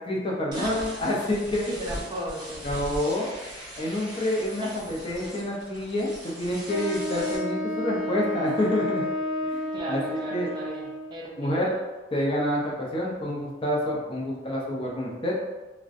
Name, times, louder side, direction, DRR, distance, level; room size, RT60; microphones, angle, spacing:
voice 1, 0.0-1.7 2.6-3.3 3.8-9.1 9.5-9.6 9.9-10.5 11.4-11.7 12.1-15.3, left 1 dB, 30° left, -3 dB, 0.5 m, -28 dB
voice 2, 0.5-0.9 1.7-2.7 4.6-4.7 9.7-11.8, right 1 dB, 25° right, -3 dB, 0.3 m, -36 dB
sound 1, 0.5-7.4, equal, 45° right, 1.3 m, -40 dB
Wind instrument woodwind instrument, 6.7-11.1, equal, 75° left, 0.9 m, -31 dB
2.4 x 2.1 x 2.5 m, 1.1 s
head